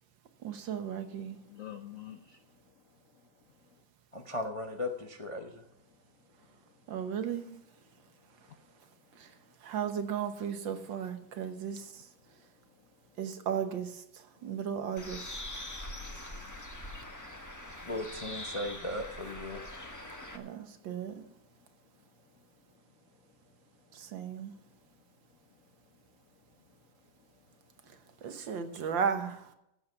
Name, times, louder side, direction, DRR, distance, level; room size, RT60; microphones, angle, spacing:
voice 1, 0.4-1.4 6.9-7.6 9.1-12.1 13.2-15.4 20.3-21.2 23.9-24.5 27.9-29.5, right 7 dB, 65° right, 8 dB, 1.8 m, -36 dB
voice 2, 1.3-3.8 6.1-6.9 8.0-9.6 12.2-13.2 14.3-14.4 15.5-17.9 20.0-20.9 21.5-24.2 24.8-25.2 25.5-27.6 27.9-28.2, left 11 dB, 65° left, 8 dB, 0.8 m, -57 dB
voice 3, 4.1-5.6 17.9-19.6, left 1 dB, 30° left, 3 dB, 0.6 m, -37 dB
Bird, 15.0-20.4, left 1 dB, 10° left, 0.9 m, -43 dB
15.5 x 8.0 x 5.8 m, 0.81 s
omnidirectional pair, 2.3 m